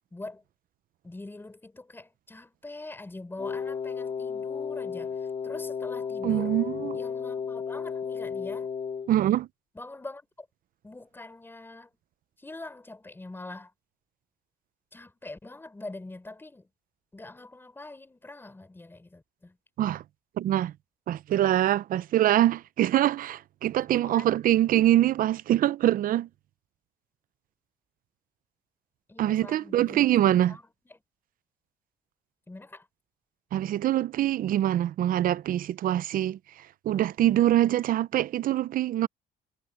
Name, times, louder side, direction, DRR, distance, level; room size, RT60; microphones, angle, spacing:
voice 1, 0.1-0.4 1.0-6.6 6.9-8.7 9.7-10.5 10.8-11.9 12.4-13.7 14.9-16.7 17.1-19.6 23.9-24.3 29.1-30.1 30.5-31.0 32.5-32.9, left 2 dB, 15° left, 3.8 m, -44 dB
Wind instrument woodwind instrument, 3.4-9.1, left 6 dB, 40° left, 1.9 m, -33 dB
voice 2, 6.2-7.0 9.1-9.5 19.8-20.0 20.4-20.7 21.1-26.3 29.2-30.6 33.5-39.1, right 12 dB, 55° right, 0.6 m, -24 dB
cardioid pair, 110°, 17 cm